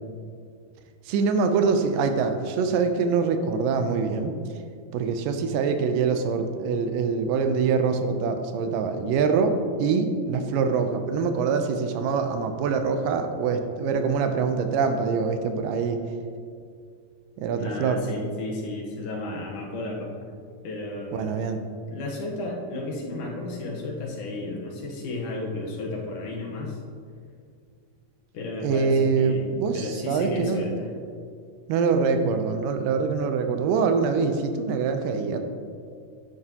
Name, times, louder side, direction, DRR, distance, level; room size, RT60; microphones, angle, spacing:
voice 1, 1.1-4.4 4.9-16.0 17.4-18.0 21.1-21.6 28.6-30.7 31.7-35.4, right 5 dB, 80° right, 7 dB, 2.3 m, -24 dB
voice 2, 17.6-20.1 20.6-21.3 21.9-26.8 28.3-30.9, left 2 dB, 70° left, -1 dB, 2.5 m, -33 dB
11.0 x 9.4 x 2.9 m, 2.2 s
omnidirectional pair, 3.9 m